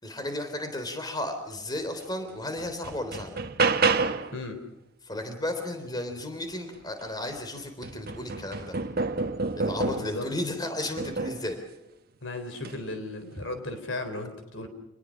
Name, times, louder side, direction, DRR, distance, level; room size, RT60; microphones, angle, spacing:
voice 1, 0.0-3.4 5.0-8.8 9.6-11.6 13.4-13.5, left 1 dB, 20° left, 7 dB, 3.6 m, -34 dB
sound 1, 2.0-2.1 2.6-4.4 6.8-6.9 7.3-10.3 11.0-11.5 12.5-12.8, right 4 dB, 50° right, 1.4 m, -28 dB
voice 2, 9.9-10.3 12.2-14.7, left 2 dB, 65° left, 8 dB, 3.9 m, -35 dB
27.5 x 20.5 x 6.4 m, 0.88 s
head